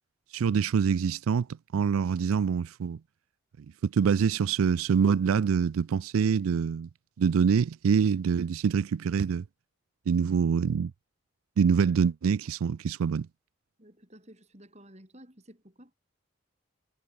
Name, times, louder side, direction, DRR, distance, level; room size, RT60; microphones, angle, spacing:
voice 1, 0.3-1.5 1.7-3.0 3.6-6.9 7.2-9.4 10.1-10.9 11.6-13.3, right 6 dB, 85° right, 0.4 m, -25 dB
voice 2, 13.8-15.9, right 1 dB, 30° right, 7.5 m, -53 dB
head